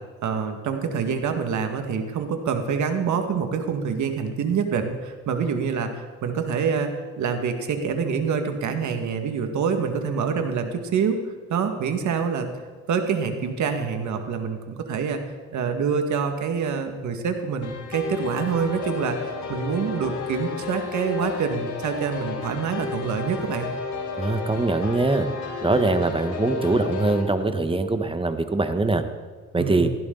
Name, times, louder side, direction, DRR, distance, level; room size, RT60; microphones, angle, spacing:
voice 1, 0.2-11.2 11.5-12.5 12.9-15.2 15.5-23.7 29.6-29.9, right 6 dB, 70° right, 6 dB, 1.9 m, -26 dB
sound 1, 17.6-27.2, left 5 dB, 70° left, 4.7 m, -32 dB
voice 2, 24.2-25.3 25.6-29.0 29.5-29.9, right 2 dB, 15° right, 8 dB, 1.3 m, -22 dB
18.5 x 15.5 x 4.0 m, 1.5 s
cardioid pair, 90°, 30 cm